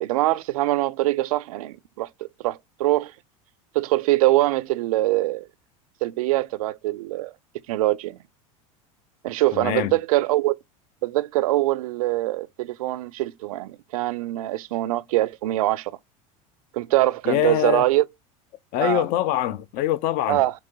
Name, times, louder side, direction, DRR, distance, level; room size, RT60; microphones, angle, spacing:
voice 1, 0.0-2.1 2.4-3.1 3.7-5.5 6.0-7.3 7.7-8.2 9.2-10.5 11.0-15.9 16.7-18.0 18.8-19.0 20.3-20.5, right 17 dB, 80° right, 0.4 m, -23 dB
voice 2, 9.5-10.0 17.2-17.9 18.7-20.4, left 13 dB, 55° left, 0.5 m, -24 dB
4.9 x 2.9 x 3.6 m
supercardioid pair, 100°, 18 cm